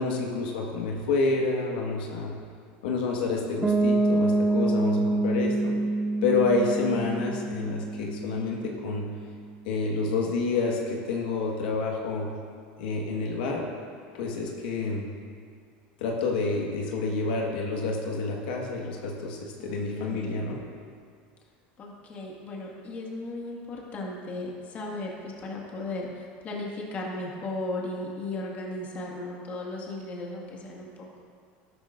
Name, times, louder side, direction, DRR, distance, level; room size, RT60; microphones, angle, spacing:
voice 1, 0.0-2.4 2.8-5.7 6.2-9.1 9.6-12.3 12.8-13.7 14.1-15.1 16.0-20.6, left 3 dB, 85° left, -1 dB, 1.6 m, -28 dB
Piano, 3.6-9.3, right 2 dB, 10° right, 1.0 m, -26 dB
voice 2, 19.6-20.5 21.8-31.2, left 2 dB, 30° left, -2 dB, 1.9 m, -36 dB
13.0 x 12.0 x 2.6 m, 2.1 s
supercardioid pair, 140°, 5 cm